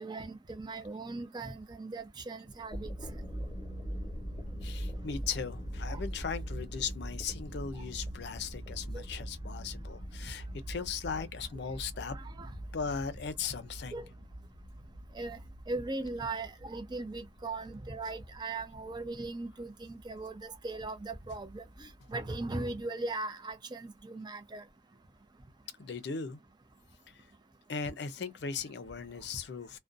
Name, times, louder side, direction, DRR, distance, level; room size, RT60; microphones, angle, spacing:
voice 1, 0.0-2.9 5.9-6.0 8.9-9.0 12.1-12.5 13.9-14.1 15.1-15.4 15.7-24.6, right 2 dB, 25° right, 0.5 m, -39 dB
sound 1, 2.5-22.2, equal, 20° left, 1.0 m, -43 dB
voice 2, 4.6-12.2 12.7-14.0 25.8-26.4 27.7-29.8, left 6 dB, 65° left, 0.5 m, -38 dB
2.5 x 2.1 x 2.5 m
head